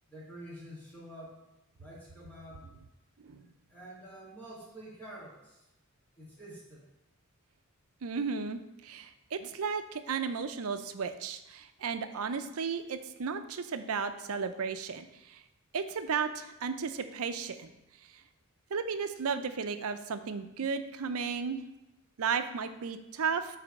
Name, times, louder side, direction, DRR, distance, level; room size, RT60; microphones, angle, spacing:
voice 1, 0.1-1.4 1.8-2.6 3.7-5.6 6.2-6.8, right 1 dB, 5° left, -6 dB, 1.6 m, -48 dB
voice 2, 8.0-15.0 15.7-17.7 18.7-21.6 22.2-23.5, right 5 dB, 75° right, 9 dB, 0.5 m, -34 dB
7.4 x 3.3 x 5.2 m, 0.93 s
head